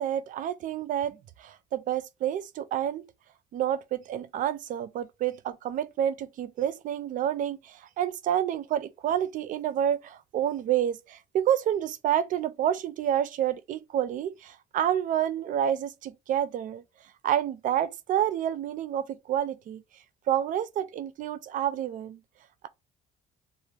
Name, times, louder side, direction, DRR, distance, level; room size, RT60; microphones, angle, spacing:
voice 1, 0.0-3.0 3.5-16.8 17.2-19.8 20.3-22.2, right 10 dB, 50° right, 0.4 m, -29 dB
2.4 x 2.0 x 3.2 m
cardioid pair, 110°, 17 cm